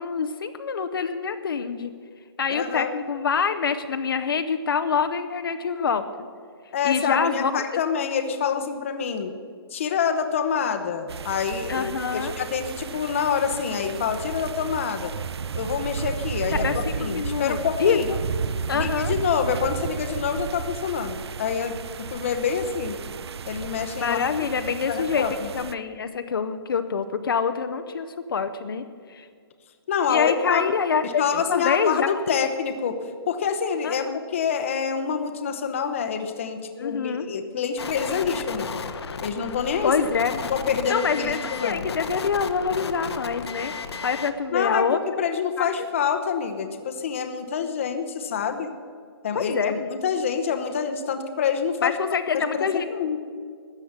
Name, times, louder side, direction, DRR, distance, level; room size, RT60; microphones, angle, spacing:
voice 1, 0.0-1.9 2.4-6.0 6.8-7.6 11.7-12.3 16.5-18.2 18.7-19.1 24.0-25.3 25.5-29.3 30.1-32.1 33.8-34.2 36.8-37.3 39.8-40.5 40.9-45.0 45.6-45.9 49.5-49.9 51.8-52.9, left 6 dB, 60° left, 9 dB, 0.7 m, -26 dB
voice 2, 2.5-2.9 6.7-9.3 9.7-15.1 15.5-18.1 18.7-21.8 22.1-23.0 23.5-24.2 24.9-25.5 29.9-30.6 31.0-33.0 33.3-34.1 34.3-38.7 39.2-39.9 40.5-41.8 44.5-44.9 45.2-48.7 49.2-52.0 52.3-53.2, left 7 dB, 30° left, 7 dB, 0.8 m, -26 dB
sound 1, 11.1-25.7, right 6 dB, 75° right, 0.5 m, -33 dB
sound 2, 37.8-44.3, left 5 dB, 75° left, 1.0 m, -34 dB
13.0 x 7.9 x 8.6 m, 2.2 s
hypercardioid pair, 175°, 14 cm